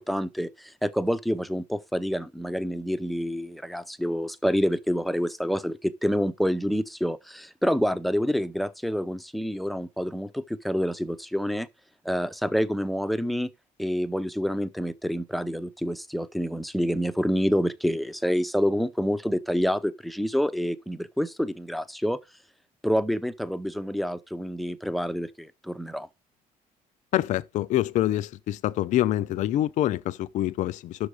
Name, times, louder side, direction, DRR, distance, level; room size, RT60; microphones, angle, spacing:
voice 1, 0.0-11.7 12.0-13.5 13.8-22.2 22.8-26.1, equal, ahead, 0.5 m, -27 dB
voice 2, 27.1-31.1, left 13 dB, 55° left, 0.4 m, -26 dB
6.3 x 4.9 x 6.4 m
cardioid pair, 140°, 15 cm